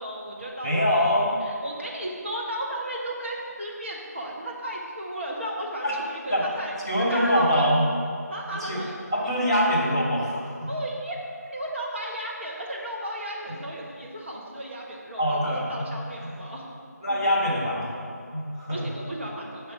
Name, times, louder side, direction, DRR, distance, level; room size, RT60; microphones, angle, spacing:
voice 1, 0.0-1.1 1.4-6.7 7.1-7.7 8.3-9.0 9.2-9.7 10.7-11.2 11.5-15.4 15.7-16.6 18.7-19.7, right 1 dB, 45° right, -2 dB, 1.0 m, -34 dB
voice 2, 0.6-1.3 5.8-6.0 6.3-6.4 6.9-7.8 8.6-8.8 9.1-10.7 15.2-15.8 16.2-16.4 17.0-18.9, equal, 15° right, -9 dB, 0.7 m, -24 dB
6.5 x 3.3 x 5.8 m, 2.2 s
figure-of-eight pair, 175°, 9 cm